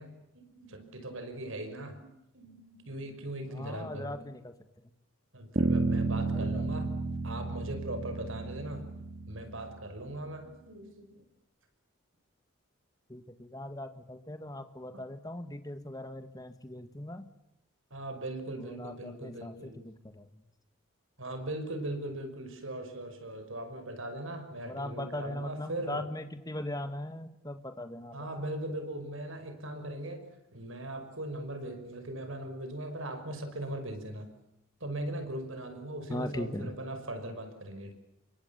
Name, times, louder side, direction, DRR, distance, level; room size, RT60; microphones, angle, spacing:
voice 1, 0.0-2.1 2.3-4.2 5.3-8.9 9.3-11.2 14.9-15.0 17.9-19.8 21.2-26.0 28.1-30.2 30.5-34.3 34.8-37.9, right 1 dB, 80° right, 8 dB, 5.8 m, -39 dB
voice 2, 3.5-4.5 6.3-6.6 13.1-17.3 18.6-20.3 24.7-28.5 36.1-36.7, left 1 dB, 20° left, 8 dB, 1.9 m, -40 dB
Bass guitar, 5.6-10.0, right 3 dB, 40° right, 2.0 m, -32 dB
29.5 x 24.0 x 7.1 m, 0.86 s
head